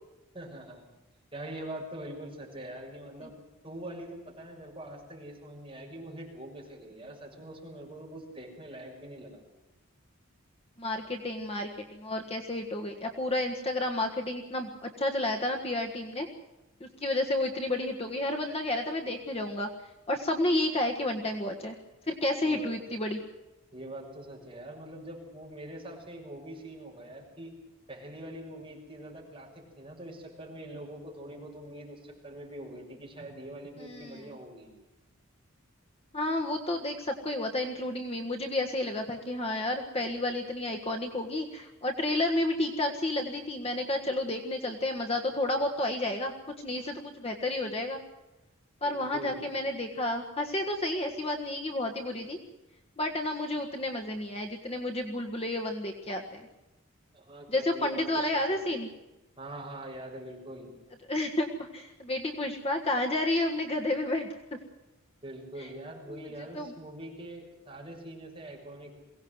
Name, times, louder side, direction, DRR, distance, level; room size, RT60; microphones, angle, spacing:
voice 1, 0.3-0.8 1.3-3.4 3.6-9.4 22.4-23.0 23.7-27.5 27.9-34.7 48.8-49.6 57.1-58.2 58.5-58.6 59.4-60.7 65.2-68.9, right 1 dB, 25° right, -2 dB, 6.7 m, -43 dB
voice 2, 10.8-16.3 16.8-19.7 20.1-21.7 22.1-23.2 33.8-34.2 36.1-46.3 46.6-48.0 48.8-52.4 53.0-56.4 57.5-58.9 61.1-64.6 65.6-65.7 66.1-66.3 66.5-66.7, left 1 dB, 25° left, 3 dB, 1.6 m, -31 dB
22.5 x 17.5 x 8.0 m, 1.0 s
head